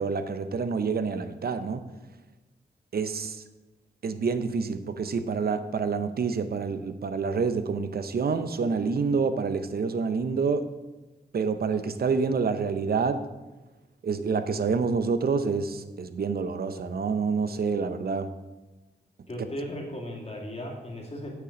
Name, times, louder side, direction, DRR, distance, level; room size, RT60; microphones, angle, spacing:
voice 1, 0.0-1.8 2.9-3.4 4.0-10.7 11.3-13.2 14.0-18.3, right 5 dB, 60° right, 10 dB, 0.7 m, -27 dB
voice 2, 19.3-21.3, equal, 35° left, -1 dB, 2.2 m, -36 dB
8.4 x 7.0 x 5.0 m, 1.1 s
cardioid pair, 80°, 18 cm